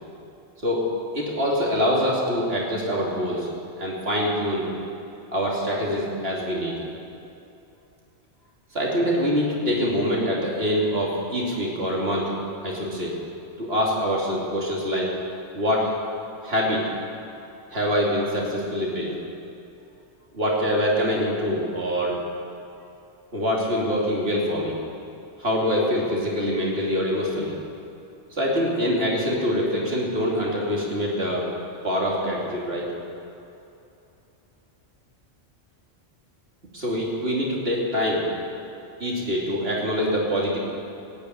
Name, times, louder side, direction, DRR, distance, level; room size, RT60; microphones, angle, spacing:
voice 1, 1.1-3.5 3.8-4.7 5.3-6.8 8.7-12.3 12.6-13.1 13.6-15.1 15.5-15.9 16.4-16.8 17.7-19.1 20.3-22.2 23.3-24.7 25.4-27.5 28.3-31.5 31.8-32.9 36.7-38.2 39.0-40.6, equal, 65° right, -4 dB, 3.0 m, -24 dB
16.0 x 9.1 x 9.1 m, 2.8 s
omnidirectional pair, 1.1 m